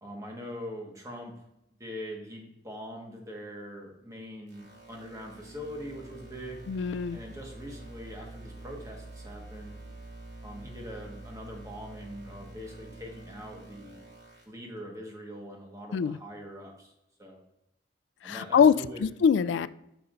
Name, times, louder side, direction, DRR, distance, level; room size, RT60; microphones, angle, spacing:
voice 1, 0.0-1.3 1.8-6.6 7.1-9.8 10.4-14.0 14.5-16.9 17.2-17.4 18.2-19.1, equal, 20° right, 0 dB, 1.5 m, -42 dB
sound 1, 4.5-14.4, right 2 dB, 70° right, 2.4 m, -47 dB
voice 2, 6.7-7.2 15.9-16.2 18.2-18.7 19.0-19.7, left 7 dB, 90° left, 17 dB, 0.3 m, -23 dB
8.9 x 5.6 x 2.6 m, 0.85 s
head